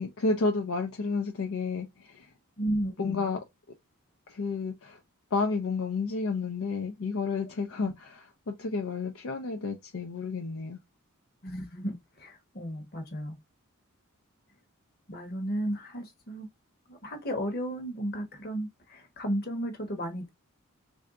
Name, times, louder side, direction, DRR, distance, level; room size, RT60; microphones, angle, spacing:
voice 1, 0.0-2.3 3.0-3.4 4.3-5.0 5.3-10.8, left 4 dB, 65° left, 0.5 m, -31 dB
voice 2, 2.6-3.3 7.8-7.9 11.4-13.4 15.1-16.5 16.9-20.3, equal, 45° left, 1.1 m, -34 dB
3.4 x 2.7 x 3.6 m
head